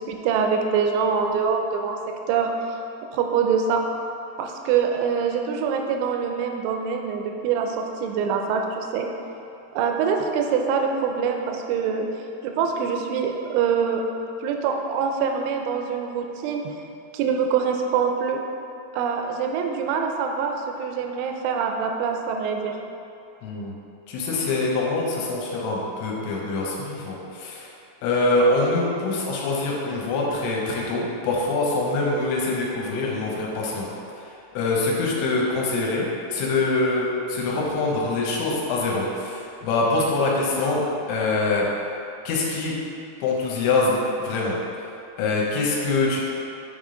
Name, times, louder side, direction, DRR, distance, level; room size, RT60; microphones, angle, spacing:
voice 1, 0.0-2.5 3.1-3.8 4.4-9.1 9.7-12.1 12.4-14.0 14.4-16.7 17.1-18.4 18.9-22.8, right 6 dB, 85° right, 3 dB, 2.8 m, -24 dB
voice 2, 23.4-23.7 24.1-27.7 28.0-33.9 34.2-41.7 42.2-42.8 43.2-44.6 45.2-46.2, left 2 dB, 75° left, -3 dB, 3.1 m, -24 dB
9.6 x 3.6 x 3.8 m, 2.7 s
omnidirectional pair, 5.6 m